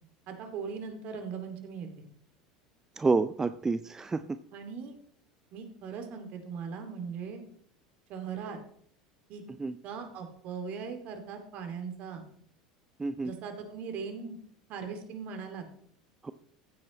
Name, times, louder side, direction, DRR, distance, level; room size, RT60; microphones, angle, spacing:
voice 1, 0.3-1.9 4.5-4.9 5.5-7.4 8.1-8.6 9.3-9.4 9.8-12.2 13.2-14.4 14.7-15.6, right 6 dB, 50° right, 6 dB, 2.4 m, -39 dB
voice 2, 3.0-4.4 9.6-9.8 13.0-13.3 16.2-16.3, right 3 dB, 15° right, 11 dB, 0.5 m, -29 dB
15.0 x 8.6 x 3.1 m, 0.64 s
figure-of-eight pair, 75°, 3 cm